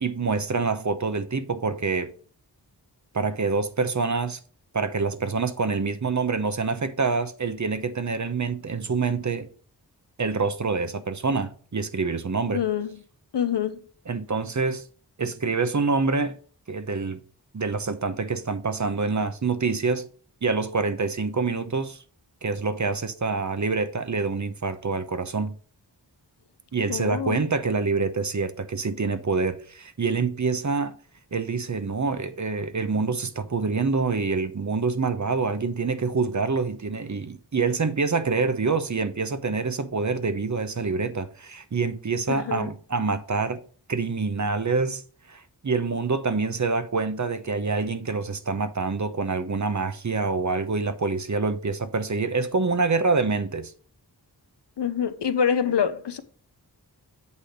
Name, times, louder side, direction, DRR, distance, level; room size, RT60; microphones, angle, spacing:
voice 1, 0.0-2.1 3.1-4.4 4.7-9.5 10.2-12.6 14.1-14.9 15.2-16.4 16.7-17.2 17.5-20.1 20.4-22.0 22.4-25.5 26.7-30.9 31.3-43.6 43.9-45.0 45.3-53.7, right 4 dB, 45° right, 0.8 m, -26 dB
voice 2, 12.5-13.0 13.3-13.8 26.9-27.4 42.3-42.7 54.8-56.2, left 8 dB, 85° left, 0.7 m, -26 dB
8.2 x 3.3 x 6.4 m
wide cardioid pair, 55°, 40 cm